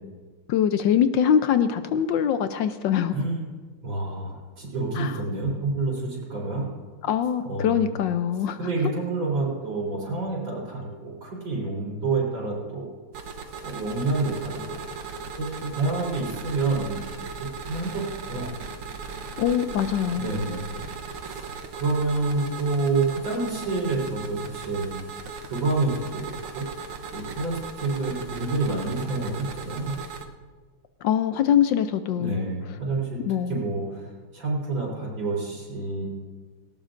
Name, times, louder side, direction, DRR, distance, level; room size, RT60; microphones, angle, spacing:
voice 1, 0.5-3.1 5.0-5.2 7.0-8.6 19.4-20.3 31.0-32.5 33.3-33.7, left 9 dB, 70° left, 10 dB, 1.1 m, -23 dB
voice 2, 3.1-3.5 3.8-6.7 7.4-7.9 8.6-12.9 13.6-14.8 15.4-17.1 17.7-18.5 20.2-20.9 21.2-21.4 21.7-24.9 25.5-26.7 27.1-29.9 32.2-33.2 33.5-36.0, right 3 dB, 60° right, -5 dB, 4.3 m, -28 dB
sound 1, 13.1-30.2, right 4 dB, 85° right, 1.9 m, -38 dB
19.0 x 17.5 x 2.6 m, 1.4 s
omnidirectional pair, 2.3 m